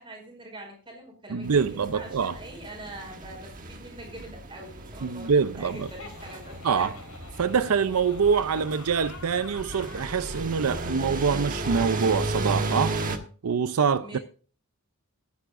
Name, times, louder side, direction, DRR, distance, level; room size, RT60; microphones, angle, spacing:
voice 1, 0.0-6.9 14.0-14.2, right 1 dB, 20° right, 5.1 m, -43 dB
voice 2, 1.3-2.3 5.0-5.9 6.6-6.9 7.4-13.0 13.4-14.2, right 6 dB, 80° right, 0.5 m, -25 dB
sound 1, 1.4-13.2, right 2 dB, 35° right, 1.3 m, -34 dB
Laughter, 5.6-10.4, left 4 dB, 75° left, 4.1 m, -46 dB
19.0 x 9.7 x 2.5 m
head